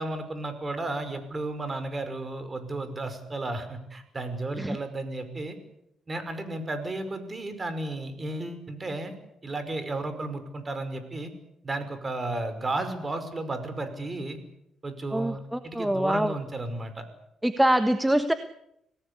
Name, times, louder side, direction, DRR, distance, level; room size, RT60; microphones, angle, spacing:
voice 1, 0.0-5.6 6.1-9.2 9.4-11.3 11.6-14.4 14.8-17.0, right 2 dB, 25° right, 9 dB, 5.5 m, -33 dB
voice 2, 15.1-16.3 17.4-18.3, right 1 dB, 5° right, 9 dB, 1.4 m, -24 dB
26.5 x 18.0 x 8.5 m, 0.79 s
cardioid pair, 90°, 0 cm